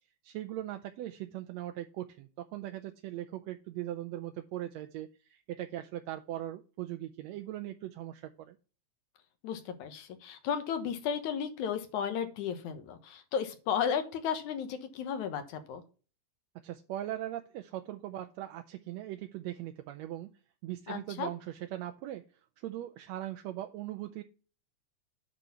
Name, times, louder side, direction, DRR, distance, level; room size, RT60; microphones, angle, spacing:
voice 1, 0.2-8.6 16.6-20.3 20.6-22.3 22.6-24.2, right 13 dB, 75° right, 6 dB, 1.7 m, -40 dB
voice 2, 9.4-15.8 20.9-21.3, left 7 dB, 75° left, 8 dB, 2.6 m, -34 dB
9.1 x 4.2 x 6.7 m, 0.36 s
omnidirectional pair, 3.4 m